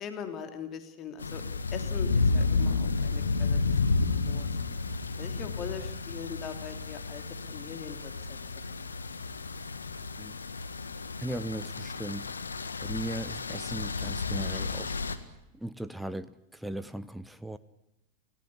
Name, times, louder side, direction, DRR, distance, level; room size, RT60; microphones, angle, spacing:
voice 1, 0.0-1.4 1.7-4.5 5.2-8.1, left 7 dB, 30° left, 8 dB, 3.0 m, -41 dB
sound 1, 1.2-15.2, left 3 dB, 75° left, 1.7 m, -31 dB
voice 2, 11.2-12.3 12.8-15.0 15.6-17.6, right 1 dB, ahead, 12 dB, 0.9 m, -37 dB
28.5 x 17.0 x 8.6 m, 0.91 s
figure-of-eight pair, 90°, 0 cm